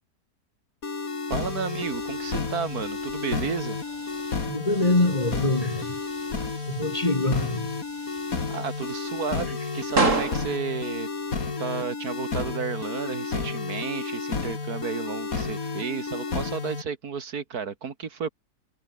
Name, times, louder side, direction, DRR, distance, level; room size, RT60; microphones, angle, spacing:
sound 1, 0.8-16.8, left 4 dB, 55° left, 3.0 m, -31 dB
sound 2, 1.3-12.2, right 3 dB, 50° right, 3.8 m, -34 dB
voice 1, 1.3-3.8 8.5-11.1 11.6-18.3, right 6 dB, 65° right, 2.2 m, -32 dB
voice 2, 4.5-6.0 6.7-7.7, left 2 dB, 20° left, 2.1 m, -24 dB
omnidirectional pair, 1.7 m